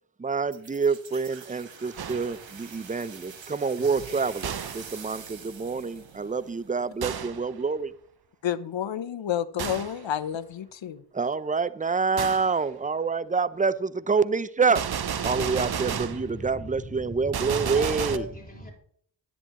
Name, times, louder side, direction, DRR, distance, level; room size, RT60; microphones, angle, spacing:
voice 1, 0.2-7.9 11.1-14.8 15.2-18.2, right 5 dB, 15° right, 16 dB, 0.5 m, -27 dB
sound 1, 0.5-7.1, right 6 dB, 65° right, 1.4 m, -45 dB
Gunshot gunfire, 2.0-2.5 4.4-5.0 7.0-7.5 9.6-10.0 12.2-12.5 14.7-16.3 17.3-18.2, right 8 dB, 50° right, 0.8 m, -32 dB
voice 2, 8.4-11.0, left 10 dB, 65° left, 15 dB, 0.8 m, -30 dB
voice 3, 15.2-18.7, equal, 20° left, -1 dB, 4.2 m, -39 dB
10.5 x 9.9 x 3.0 m, 0.63 s
cardioid pair, 50°, 48 cm